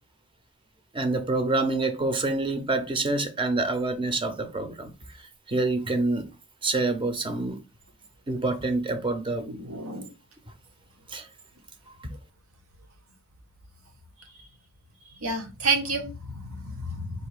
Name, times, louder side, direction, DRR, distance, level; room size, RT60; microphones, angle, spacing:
voice 1, 0.9-4.9 5.5-6.3 6.6-7.6 8.3-9.4 11.1-11.3 12.0-12.1, right 2 dB, 25° right, 0.6 m, -27 dB
voice 2, 9.4-10.1 15.2-17.3, right 3 dB, 75° right, 1.1 m, -30 dB
4.0 x 2.7 x 4.8 m
head